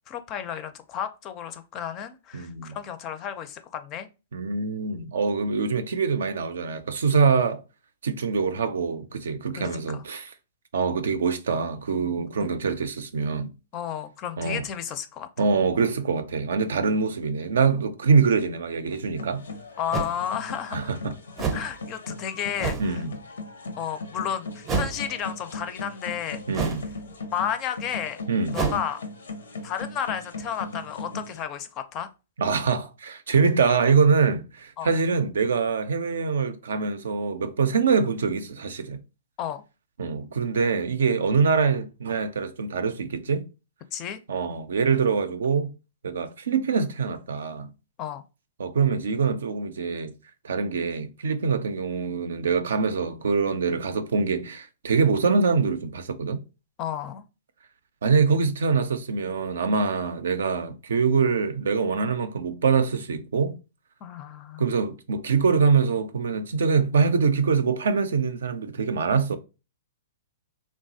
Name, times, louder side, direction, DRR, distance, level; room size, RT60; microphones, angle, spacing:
voice 1, 0.1-4.1 9.6-10.0 13.7-15.3 19.8-20.9 21.5-23.0 23.8-26.4 27.3-28.2 28.5-29.0 29.6-32.1 34.8-34.9 39.4-39.6 43.9-44.2 48.0-48.2 56.8-57.2 64.0-64.7, left 9 dB, 35° left, 0.4 m, -32 dB
voice 2, 2.3-2.8 4.3-7.6 8.0-10.3 10.7-13.5 14.4-14.6 15.4-19.4 20.7-21.1 22.8-23.1 26.5-26.9 28.3-28.5 32.4-39.0 40.0-43.5 44.3-45.7 46.0-47.7 48.6-50.1 50.4-56.4 58.0-63.6 64.6-69.4, right 5 dB, 75° right, 0.4 m, -24 dB
sound 1, 18.9-19.0 19.9-20.2 21.4-21.7 22.6-22.9 24.7-25.1 26.5-26.9 28.5-28.8, right 5 dB, 25° right, 0.6 m, -28 dB
sound 2, 19.2-31.4, left 3 dB, 85° left, 0.6 m, -38 dB
3.0 x 2.3 x 2.7 m
hypercardioid pair, 125°, 0 cm